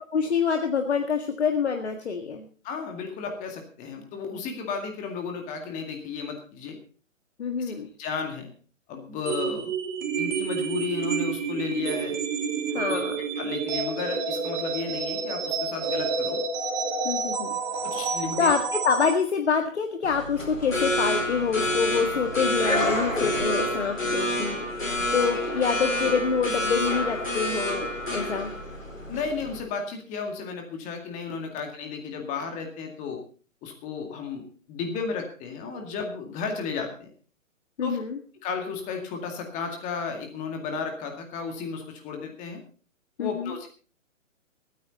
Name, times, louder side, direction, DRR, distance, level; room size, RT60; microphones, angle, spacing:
voice 1, 0.1-2.5 7.4-7.9 12.7-13.2 17.0-17.6 18.1-28.5 37.8-38.2 43.2-43.5, left 6 dB, 55° left, 5 dB, 1.8 m, -26 dB
voice 2, 2.6-6.8 7.6-8.5 8.9-9.7 10.2-12.2 12.9-13.0 13.4-16.4 17.8-18.5 29.1-33.2 33.6-37.1 37.8-38.0 38.4-42.6 43.2-43.7, left 5 dB, 20° left, 3 dB, 2.1 m, -33 dB
sound 1, 9.3-19.2, right 5 dB, 35° right, 2.6 m, -29 dB
sound 2, 20.0-29.6, left 1 dB, 80° left, 4.4 m, -28 dB
23.5 x 9.4 x 4.1 m, 0.39 s
figure-of-eight pair, 125°, 39 cm